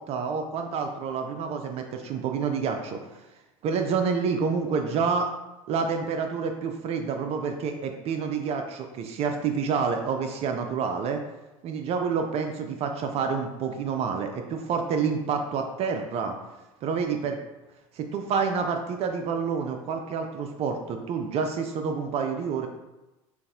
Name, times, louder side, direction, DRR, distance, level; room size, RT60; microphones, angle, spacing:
voice 1, 0.0-3.0 3.6-5.3 5.7-11.2 11.6-16.4 16.8-17.4 17.9-22.7, right 5 dB, 35° right, 5 dB, 0.4 m, -28 dB
4.0 x 2.5 x 3.5 m, 1.0 s
figure-of-eight pair, 70°, 18 cm